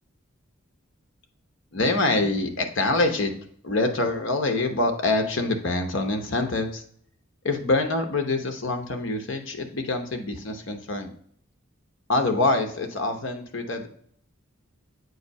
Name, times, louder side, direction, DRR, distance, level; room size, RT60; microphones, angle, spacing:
voice 1, 1.7-3.3 3.6-6.8 7.4-11.1 12.1-13.9, left 2 dB, 65° left, 5 dB, 0.9 m, -25 dB
7.9 x 2.7 x 5.3 m, 0.62 s
head